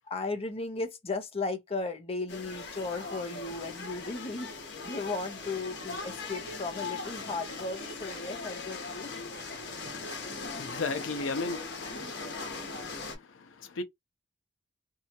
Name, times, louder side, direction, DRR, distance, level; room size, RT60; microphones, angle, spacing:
voice 1, 0.1-4.5 4.8-9.2 10.2-10.5 11.9-12.2, left 3 dB, 30° left, 0.7 m, -36 dB
sound 1, 2.3-13.2, left 3 dB, 65° left, 1.0 m, -39 dB
voice 2, 9.6-13.8, left 3 dB, 85° left, 0.6 m, -38 dB
2.7 x 2.3 x 2.8 m
head